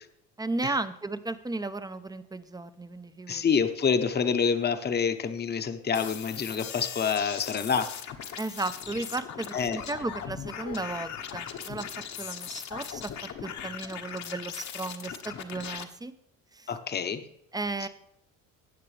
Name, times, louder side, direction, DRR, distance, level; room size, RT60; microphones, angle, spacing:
voice 1, 0.4-3.4 8.3-11.9 12.2-13.1 13.4-16.1 16.5-16.7 17.5-17.9, right 2 dB, 10° right, 12 dB, 0.7 m, -34 dB
voice 2, 3.3-7.9 9.5-9.8 16.7-17.2, left 6 dB, 25° left, 9 dB, 1.0 m, -27 dB
sound 1, 5.9-15.8, left 8 dB, 50° left, 1.3 m, -39 dB
17.0 x 6.7 x 3.4 m, 0.75 s
cardioid pair, 105°, 36 cm